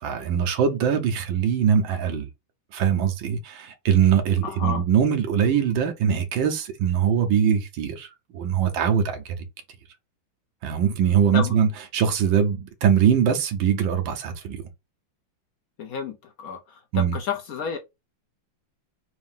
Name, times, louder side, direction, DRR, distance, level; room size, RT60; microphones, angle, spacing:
voice 1, 0.0-2.3 2.7-8.1 8.3-9.2 10.6-14.6 16.9-17.1, right 8 dB, 75° right, 1.6 m, -22 dB
voice 2, 4.4-4.8 11.3-11.5 15.8-17.8, left 6 dB, 70° left, 0.8 m, -31 dB
4.1 x 2.7 x 3.6 m
omnidirectional pair, 2.2 m